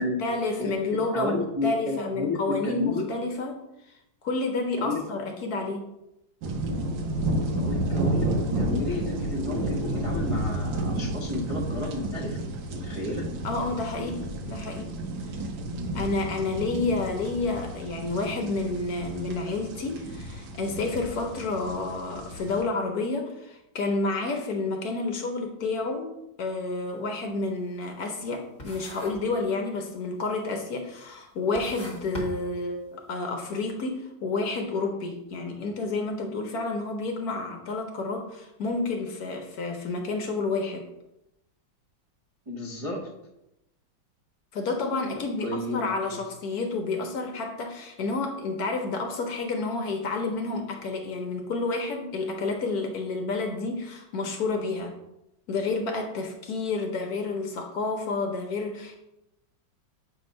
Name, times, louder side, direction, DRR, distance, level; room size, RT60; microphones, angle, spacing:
voice 1, 0.0-3.6 3.9-4.0 4.2-5.9 13.4-15.0 15.9-40.9 44.5-54.9 55.5-59.0, left 3 dB, 65° left, 3 dB, 1.1 m, -30 dB
voice 2, 1.1-3.1 4.8-5.0 7.5-12.4 12.7-13.3 42.5-43.1 45.4-46.2, left 2 dB, 45° right, -4 dB, 0.4 m, -32 dB
sound 1, 6.4-22.6, right 1 dB, 75° right, 1.4 m, -31 dB
sound 2, 26.7-26.9 27.3-28.3 28.6-29.4 29.6-30.2 30.8-30.9 31.4-33.1, left 1 dB, 25° left, 1.1 m, -40 dB
7.8 x 2.9 x 5.2 m, 0.89 s
omnidirectional pair, 2.1 m